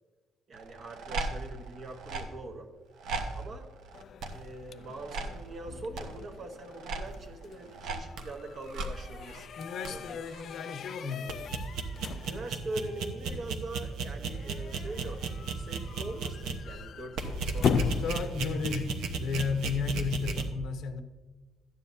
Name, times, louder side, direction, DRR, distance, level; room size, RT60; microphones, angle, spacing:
voice 1, 0.5-2.7 3.3-3.7 4.3-9.5 9.9-10.2 12.2-18.0, right 2 dB, 35° right, 1.1 m, -42 dB
sound 1, 0.6-2.2 3.0-3.4 3.9-4.6 5.0-5.4 6.0-6.2 6.7-7.2 7.7-8.3 8.7-8.9 9.3-9.4 9.8-10.0 10.4-10.5 11.3-16.6 17.2-20.5, right 4 dB, 65° right, 1.0 m, -35 dB
sound 2, 3.9-19.0, left 6 dB, 40° left, 0.4 m, -39 dB
voice 2, 9.6-11.6 17.7-21.0, left 5 dB, 60° left, 0.8 m, -34 dB
13.0 x 9.4 x 2.7 m
cardioid pair, 175°, 0 cm